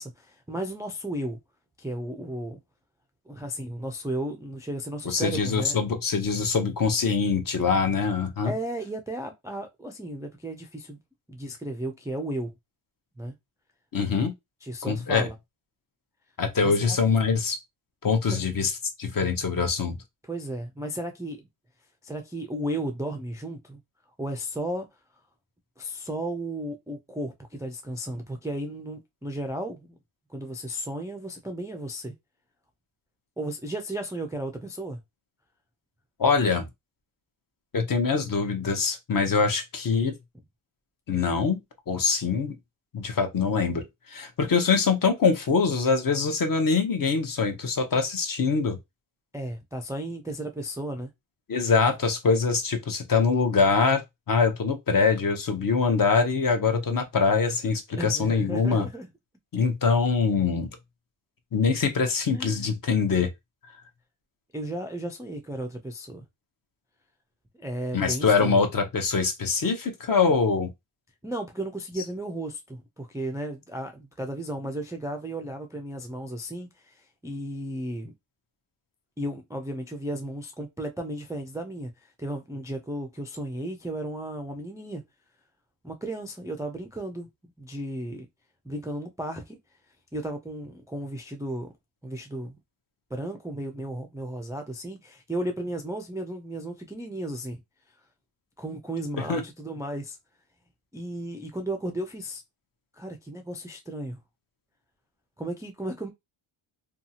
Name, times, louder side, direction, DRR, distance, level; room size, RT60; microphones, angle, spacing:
voice 1, 0.0-1.4 1.8-2.6 3.3-5.9 8.4-11.0 11.3-12.5 13.2-13.3 14.6-15.4 16.6-16.7 18.3-18.4 20.2-21.4 22.0-23.8 24.2-24.9 25.8-30.0 30.3-32.1 33.4-35.0 49.3-51.1 58.0-59.1 62.3-62.7 64.5-66.2 67.6-68.6 71.2-78.1 79.2-85.0 85.8-87.3 87.6-88.3 88.6-89.6 90.1-91.7 92.0-92.6 93.1-97.6 98.6-100.2 100.9-102.4 102.9-104.2 105.4-106.1, right 1 dB, 5° right, 0.3 m, -34 dB
voice 2, 5.0-8.5 13.9-14.3 14.8-15.3 16.4-17.6 18.0-18.7 19.0-20.0 36.2-36.7 37.7-40.1 41.1-41.6 41.9-42.6 42.9-48.8 51.5-54.0 54.3-58.9 59.5-60.7 61.5-63.3 67.9-70.7 99.3-99.4, left 5 dB, 40° left, 0.7 m, -24 dB
2.7 x 2.3 x 2.7 m
cardioid pair, 75°, 50 cm